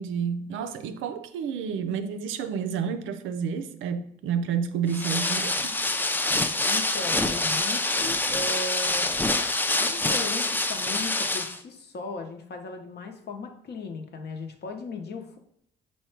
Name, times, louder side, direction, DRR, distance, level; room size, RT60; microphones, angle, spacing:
voice 1, 0.0-5.8, right 7 dB, 80° right, 10 dB, 0.4 m, -30 dB
sound 1, 4.9-11.6, left 2 dB, 10° left, 0.3 m, -26 dB
voice 2, 6.7-9.1 9.7-15.4, left 3 dB, 55° left, 4 dB, 0.8 m, -37 dB
5.5 x 2.2 x 4.4 m, 0.70 s
cardioid pair, 90°, 20 cm